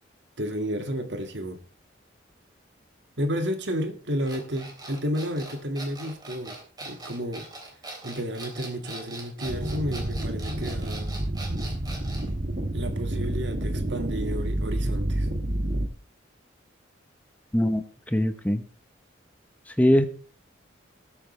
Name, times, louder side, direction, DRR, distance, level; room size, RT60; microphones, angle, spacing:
voice 1, 0.4-1.6 3.2-7.5 8.0-11.2 12.7-15.3, equal, 65° right, 2.0 m, -31 dB
sound 1, 4.2-12.3, right 2 dB, 20° right, 3.3 m, -41 dB
sound 2, 9.4-15.9, right 1 dB, 50° right, 1.7 m, -29 dB
voice 2, 17.5-18.6 19.8-20.0, equal, 10° left, 0.8 m, -22 dB
19.0 x 8.6 x 3.3 m
head